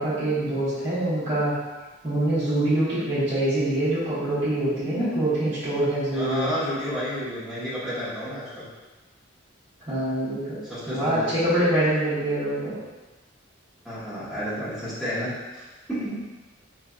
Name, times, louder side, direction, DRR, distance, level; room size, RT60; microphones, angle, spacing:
voice 1, 0.0-1.6 2.0-6.5 9.8-10.6 10.8-12.7, right 1 dB, 25° right, -15 dB, 1.3 m, -24 dB
voice 2, 6.1-8.7 10.7-11.3 13.8-15.6 15.9-16.2, equal, ahead, -14 dB, 1.4 m, -31 dB
4.1 x 3.1 x 2.4 m, 1.2 s
head